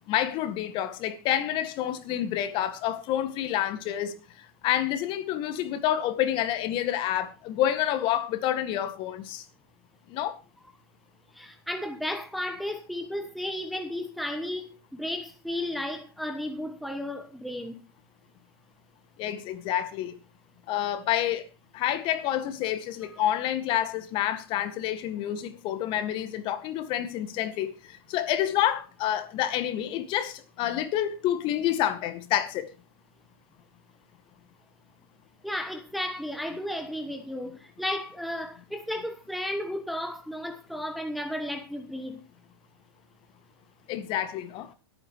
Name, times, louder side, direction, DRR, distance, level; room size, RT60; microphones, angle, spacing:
voice 1, 0.1-4.1 4.6-9.4 10.1-10.4 19.2-20.1 20.7-21.4 21.7-32.7 43.9-44.7, left 11 dB, 40° left, 2.0 m, -28 dB
voice 2, 11.3-17.8 35.4-42.2, left 1 dB, ahead, 1.2 m, -34 dB
24.0 x 9.1 x 3.1 m
hypercardioid pair, 120°, 13 cm